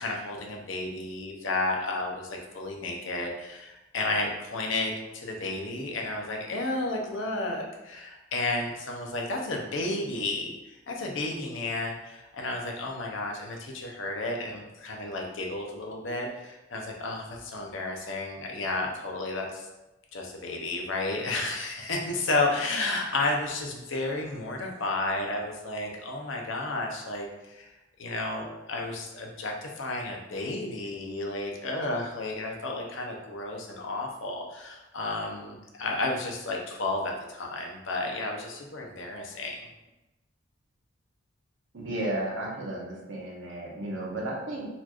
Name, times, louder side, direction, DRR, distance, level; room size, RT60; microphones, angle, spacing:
voice 1, 0.0-19.7 20.1-27.7 28.0-39.7, left 2 dB, 70° left, 0 dB, 0.6 m, -32 dB
voice 2, 41.7-44.7, right 1 dB, 70° right, -2 dB, 0.9 m, -33 dB
4.1 x 3.0 x 2.4 m, 0.99 s
head